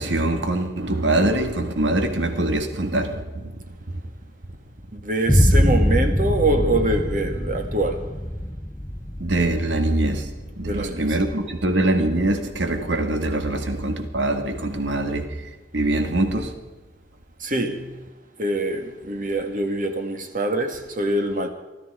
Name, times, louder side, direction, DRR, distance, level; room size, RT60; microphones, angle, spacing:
voice 1, 0.0-3.6 9.2-16.5, right 1 dB, 80° right, 2.0 m, -23 dB
voice 2, 4.9-8.1 10.6-11.1 17.4-17.9 18.4-21.5, right 1 dB, 45° right, 1.7 m, -24 dB
Boom, 5.3-13.1, equal, 15° left, 0.9 m, -24 dB
20.5 x 13.5 x 4.9 m
head